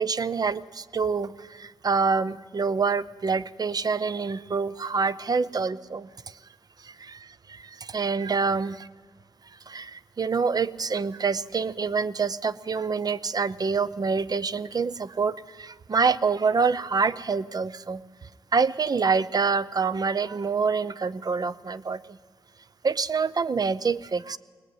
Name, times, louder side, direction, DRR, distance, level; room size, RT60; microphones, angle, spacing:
voice 1, 0.0-6.4 6.8-8.9 9.7-22.2 22.8-24.4, right 5 dB, 45° right, 16 dB, 0.6 m, -26 dB
21.0 x 19.5 x 9.3 m, 1.4 s
wide cardioid pair, 90°, 9 cm